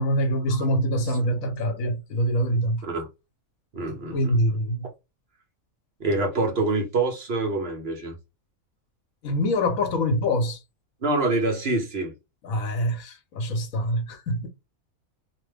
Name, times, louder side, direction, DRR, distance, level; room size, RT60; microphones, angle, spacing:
voice 1, 0.0-2.8 4.1-4.9 9.2-10.6 12.4-14.5, equal, 75° left, 1.2 m, -25 dB
voice 2, 3.7-4.6 6.0-8.2 11.0-12.1, right 2 dB, 50° right, 1.1 m, -26 dB
2.9 x 2.1 x 3.3 m
omnidirectional pair, 1.4 m